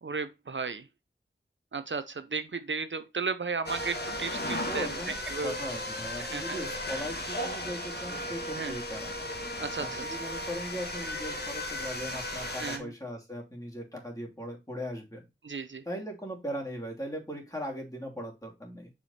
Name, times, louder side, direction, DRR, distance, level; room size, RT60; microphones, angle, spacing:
voice 1, 0.0-0.8 1.7-5.6 6.2-6.6 8.5-8.7 9.6-10.0 12.6-12.9 15.4-15.8, right 4 dB, 65° right, 0.7 m, -34 dB
sound 1, 3.7-12.8, left 1 dB, 55° left, 1.5 m, -35 dB
voice 2, 4.6-5.2 5.4-9.1 9.8-15.2 15.8-18.9, equal, 15° left, 3.0 m, -39 dB
7.0 x 4.9 x 4.2 m
wide cardioid pair, 50°, 20 cm